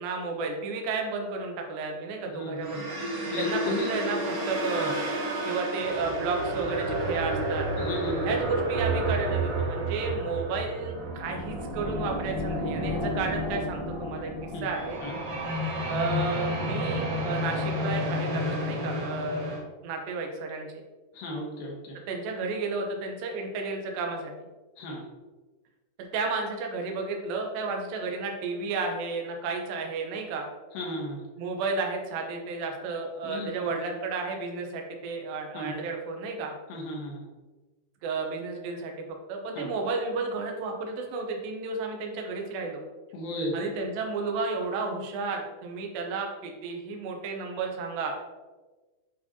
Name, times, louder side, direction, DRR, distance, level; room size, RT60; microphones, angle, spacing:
voice 1, 0.0-3.0 3.4-3.6 3.9-4.9 5.4-7.7 8.2-15.0 15.9-19.6 19.8-20.7 22.1-24.3 26.1-30.5 31.4-36.5 38.0-42.8 43.5-48.1, right 4 dB, 75° right, 2 dB, 2.5 m, -32 dB
voice 2, 2.3-2.8 3.2-3.9 4.8-4.9 7.8-8.4 14.5-14.7 15.0-15.2 21.1-22.0 24.8-25.0 30.7-31.2 33.2-33.6 35.5-35.7 36.7-37.2 39.6-39.7 43.1-43.6, left 1 dB, 75° left, -1 dB, 2.7 m, -34 dB
sound 1, 2.6-19.6, right 1 dB, 55° right, 3.1 m, -30 dB
9.6 x 4.1 x 2.9 m, 1.2 s
omnidirectional pair, 4.5 m